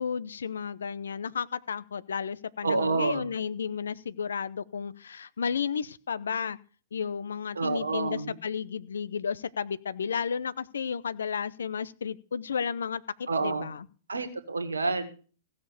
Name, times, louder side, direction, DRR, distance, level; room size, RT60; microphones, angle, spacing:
voice 1, 0.0-6.6 6.9-13.9, left 6 dB, 75° left, 17 dB, 0.7 m, -33 dB
voice 2, 2.6-3.3 7.5-8.4 13.3-13.7 14.1-15.2, right 3 dB, 85° right, 7 dB, 1.8 m, -28 dB
16.0 x 6.8 x 6.8 m, 0.39 s
figure-of-eight pair, 110°, 0 cm